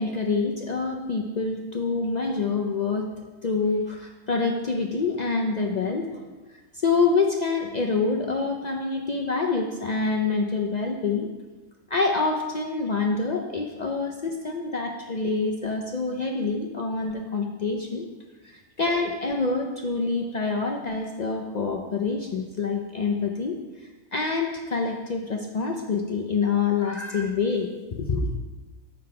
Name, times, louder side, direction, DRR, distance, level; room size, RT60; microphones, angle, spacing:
voice 1, 0.0-3.1 3.4-6.3 6.7-11.3 11.9-18.1 18.4-23.6 24.1-28.3, left 4 dB, 75° left, 2 dB, 0.4 m, -26 dB
7.6 x 6.3 x 4.7 m, 1.2 s
omnidirectional pair, 1.5 m